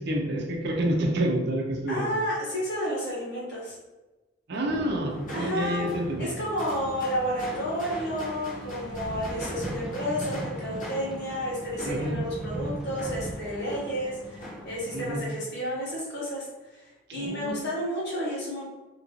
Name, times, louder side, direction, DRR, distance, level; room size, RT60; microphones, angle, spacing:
voice 1, 0.0-2.1 4.5-6.3 11.8-12.2 14.9-15.2 17.1-17.5, right 1 dB, 60° right, 0 dB, 0.6 m, -28 dB
voice 2, 1.9-3.8 5.3-5.8 6.2-18.6, equal, 60° left, -5 dB, 1.4 m, -31 dB
sound 1, 4.6-15.2, equal, 45° left, 1.0 m, -40 dB
sound 2, 8.9-13.7 14.4-14.5, right 1 dB, 5° right, 0.4 m, -38 dB
2.9 x 2.6 x 3.0 m, 1.1 s
head